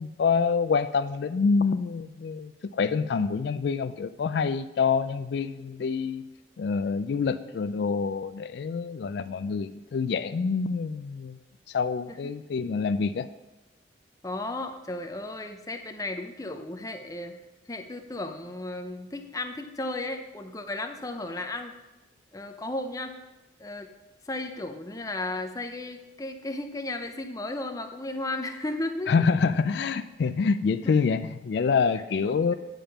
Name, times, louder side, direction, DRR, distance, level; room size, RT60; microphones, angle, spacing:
voice 1, 0.0-6.2 6.6-11.4 11.7-13.3 29.1-32.5, left 5 dB, 60° left, 11 dB, 0.3 m, -26 dB
voice 2, 14.2-17.4 17.7-21.7 22.3-23.1 23.6-23.9 24.3-29.1 30.8-30.9 32.2-32.5, left 2 dB, 20° left, 6 dB, 0.6 m, -34 dB
9.1 x 5.2 x 5.6 m, 1.0 s
head